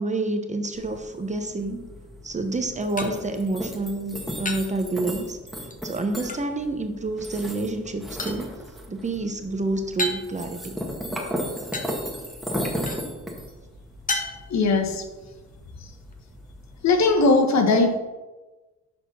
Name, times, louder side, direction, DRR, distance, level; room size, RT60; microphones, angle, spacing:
voice 1, 0.0-1.8 2.2-5.4 5.8-8.5 8.9-10.8, right 2 dB, 25° right, 6 dB, 0.9 m, -28 dB
sound 1, 0.7-17.2, equal, ahead, 1.7 m, -36 dB
sound 2, 2.3-16.7, left 2 dB, 25° left, 1.1 m, -38 dB
voice 2, 14.5-15.0 16.8-18.0, left 3 dB, 65° left, 5 dB, 1.2 m, -19 dB
6.6 x 4.9 x 5.5 m, 1.2 s
cardioid pair, 90°, 30 cm